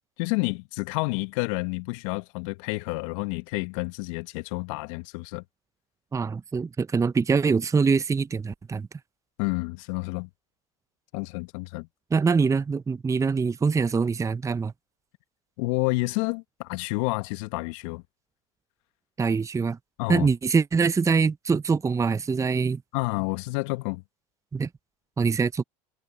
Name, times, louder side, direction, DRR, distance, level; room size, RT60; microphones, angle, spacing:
voice 1, 0.2-5.4 9.4-10.3 11.1-11.9 15.6-18.0 20.0-20.3 22.9-24.0, left 27 dB, 65° left, 2.1 m, -29 dB
voice 2, 6.1-8.9 12.1-14.7 19.2-19.8 20.1-22.8 24.5-24.7 25.2-25.6, right 5 dB, 15° right, 0.7 m, -24 dB
hypercardioid pair, 75°, 18 cm